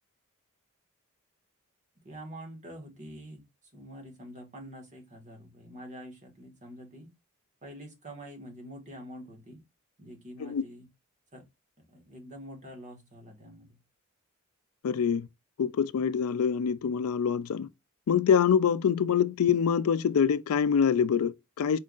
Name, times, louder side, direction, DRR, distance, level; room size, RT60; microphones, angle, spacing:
voice 1, 2.0-3.5 3.7-7.1 7.6-9.6 10.0-10.9 11.3-11.5 11.8-13.8, equal, 35° right, 1.4 m, -46 dB
voice 2, 14.8-15.3 15.6-17.7 18.1-21.8, left 7 dB, 85° left, 0.4 m, -25 dB
4.5 x 2.5 x 3.7 m
head